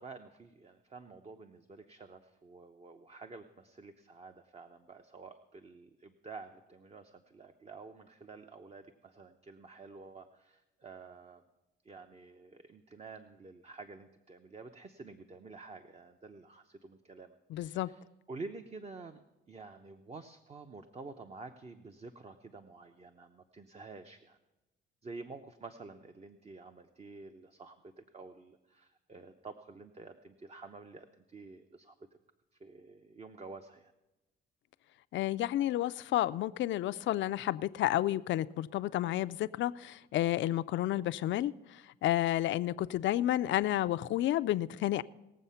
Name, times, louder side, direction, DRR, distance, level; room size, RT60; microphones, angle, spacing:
voice 1, 0.0-11.4 11.8-18.0 18.3-19.2 19.5-24.4 25.0-31.9 32.6-33.9, right 3 dB, 30° right, 7 dB, 0.8 m, -50 dB
voice 2, 17.5-17.9 35.1-45.0, left 14 dB, 70° left, 14 dB, 0.4 m, -31 dB
19.0 x 7.4 x 5.7 m, 1.0 s
cardioid pair, 90°, 20 cm